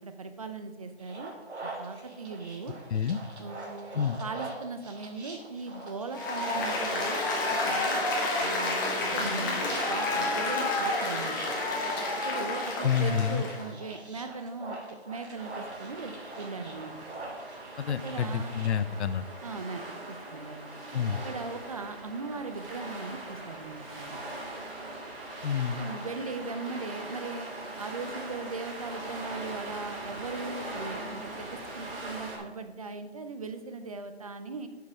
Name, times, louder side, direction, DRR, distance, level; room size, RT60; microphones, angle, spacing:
voice 1, 0.0-1.3 1.6-2.7 3.4-7.2 7.5-8.0 8.4-11.4 12.2-14.8 15.0-16.9 18.0-18.5 19.4-19.8 20.1-20.6 21.2-24.2 25.8-27.5 27.8-34.7, right 4 dB, 35° right, 9 dB, 0.5 m, -39 dB
sound 1, 1.0-18.7, right 2 dB, 80° right, 2.5 m, -45 dB
Applause, 6.1-13.7, left 2 dB, 20° left, 1.1 m, -29 dB
voice 2, 12.8-13.4 17.8-19.2 20.9-21.2 25.4-25.8, left 7 dB, 80° left, 16 dB, 0.6 m, -28 dB
sound 2, 15.3-32.4, right 1 dB, 55° right, 2.6 m, -41 dB
6.7 x 6.6 x 4.8 m, 1.3 s
hypercardioid pair, 165°, 33 cm